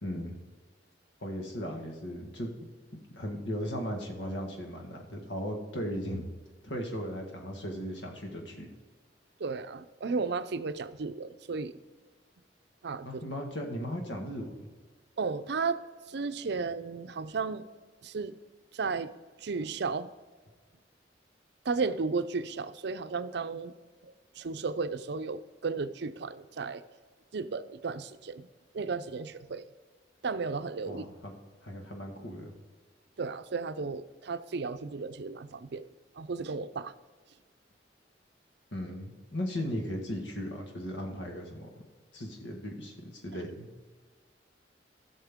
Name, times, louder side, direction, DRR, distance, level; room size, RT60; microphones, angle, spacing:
voice 1, 0.0-0.4 1.2-2.5 3.1-6.2 6.6-8.7 13.0-14.7 30.8-31.3 31.6-32.6 38.7-41.7 42.1-43.7, equal, 75° left, 2 dB, 1.7 m, -37 dB
voice 2, 9.4-11.8 12.8-13.2 15.2-15.8 16.1-17.6 18.0-18.3 18.7-19.1 19.4-20.1 21.6-23.7 24.0-26.8 27.3-28.5 28.7-29.6 30.2-31.1 33.2-35.9 36.2-36.9, right 4 dB, 65° right, 11 dB, 0.5 m, -34 dB
15.5 x 6.5 x 3.6 m, 1.4 s
head